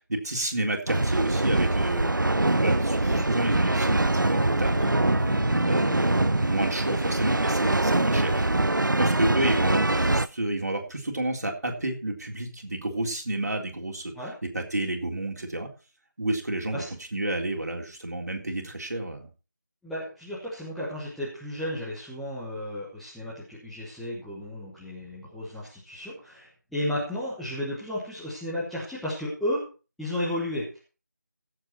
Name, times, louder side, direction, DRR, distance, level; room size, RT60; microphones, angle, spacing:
voice 1, 0.0-4.9 5.6-8.4 8.8-14.1 14.5-15.7 16.2-16.8 17.1-19.3, right 1 dB, 55° right, 2 dB, 3.8 m, -30 dB
sound 1, 0.9-10.3, right 2 dB, 80° right, 0.7 m, -24 dB
sound 2, 4.6-9.0, left 1 dB, 45° left, 4.1 m, -38 dB
voice 2, 19.8-29.6 30.0-30.8, left 1 dB, ahead, -11 dB, 1.1 m, -33 dB
16.5 x 7.8 x 4.4 m, 0.34 s
figure-of-eight pair, 170°, 10 cm